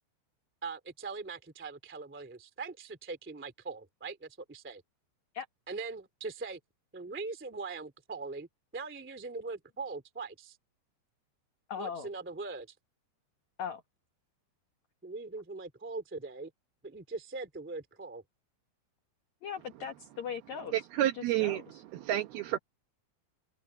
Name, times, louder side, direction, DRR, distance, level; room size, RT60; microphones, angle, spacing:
voice 1, 0.6-4.8 5.7-6.6 6.9-8.5 8.7-10.6 11.8-12.7 15.0-16.5 16.8-18.2, right 4 dB, 10° right, 0.7 m, -41 dB
voice 2, 11.7-12.1 13.6-13.8 19.4-20.7 21.4-21.8, left 7 dB, 75° left, 1.6 m, -39 dB
voice 3, 20.7-22.6, right 13 dB, 70° right, 2.5 m, -30 dB
omnidirectional pair, 5.3 m